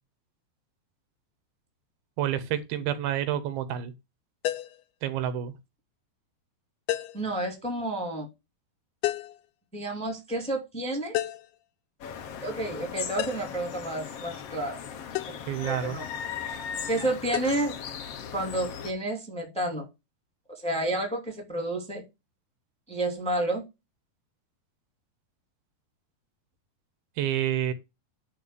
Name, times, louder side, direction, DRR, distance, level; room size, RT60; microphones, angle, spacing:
voice 1, 2.2-3.9 5.0-5.5 15.5-16.0 27.2-27.7, right 10 dB, 80° right, 2.9 m, -28 dB
sound 1, 4.5-4.8 6.9-7.3 9.0-9.4 11.2-11.6 13.2-13.6 15.2-15.4 17.3-17.5, left 14 dB, 90° left, 2.8 m, -31 dB
voice 2, 7.1-8.3 9.7-11.1 12.4-14.8 15.6-16.1 16.9-17.7 18.3-19.9 20.5-22.0 22.9-23.6, right 1 dB, ahead, 1.9 m, -30 dB
sound 2, 12.0-18.9, left 7 dB, 70° left, 1.4 m, -38 dB
10.5 x 3.8 x 6.7 m
omnidirectional pair, 4.4 m